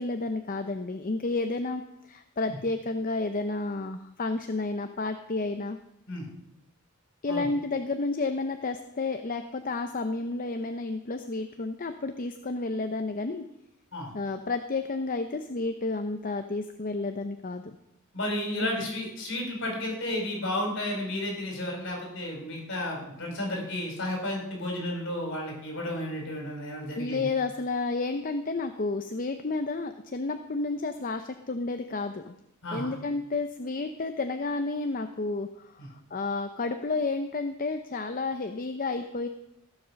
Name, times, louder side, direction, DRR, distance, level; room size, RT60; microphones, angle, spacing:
voice 1, 0.0-5.8 7.2-13.5 14.1-17.8 18.6-18.8 27.0-32.3 32.7-39.3, left 3 dB, 40° left, 7 dB, 0.7 m, -31 dB
voice 2, 18.1-27.3 32.6-32.9 35.8-35.9, left 1 dB, 60° left, 0 dB, 5.3 m, -32 dB
15.5 x 7.4 x 6.4 m, 0.82 s
head